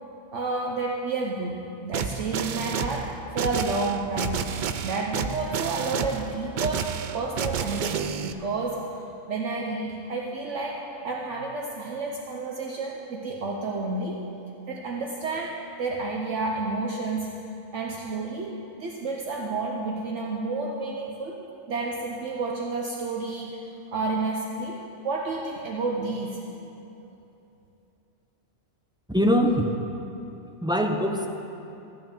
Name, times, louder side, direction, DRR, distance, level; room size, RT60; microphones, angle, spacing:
voice 1, 0.3-4.4 4.8-17.3 17.7-21.4 21.7-26.4, right 3 dB, 60° right, -1 dB, 1.1 m, -30 dB
sound 1, 1.9-8.3, right 7 dB, 80° right, 0.4 m, -30 dB
voice 2, 29.1-29.7 30.6-31.3, equal, 5° right, 2 dB, 0.4 m, -22 dB
14.0 x 6.4 x 8.7 m, 2.8 s
omnidirectional pair, 1.4 m